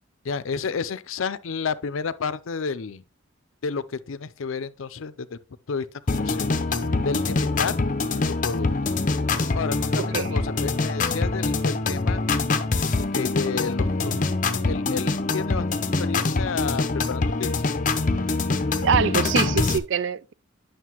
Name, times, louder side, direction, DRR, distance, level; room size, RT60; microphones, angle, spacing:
voice 1, 0.2-3.0 3.6-5.4 5.7-6.5 7.0-7.8 8.4-8.7 9.5-12.2 13.0-14.2 14.6-17.8, left 5 dB, 85° left, 0.5 m, -31 dB
sound 1, 6.1-19.8, left 3 dB, 40° left, 0.6 m, -24 dB
voice 2, 10.0-10.3 18.8-20.3, right 7 dB, 65° right, 0.4 m, -24 dB
9.3 x 6.5 x 3.0 m
head